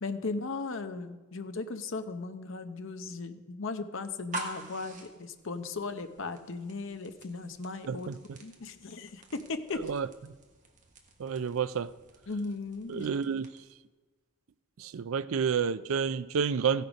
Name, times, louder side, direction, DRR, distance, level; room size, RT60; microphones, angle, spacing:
voice 1, 0.0-8.1 8.4-9.8 12.3-13.1, left 3 dB, 65° left, 9 dB, 0.8 m, -37 dB
sound 1, 4.1-13.8, right 1 dB, 40° right, 1.4 m, -47 dB
voice 2, 11.2-11.9 12.9-13.5 14.8-16.8, right 6 dB, 75° right, 16 dB, 0.4 m, -29 dB
15.5 x 6.6 x 5.2 m, 1.3 s
head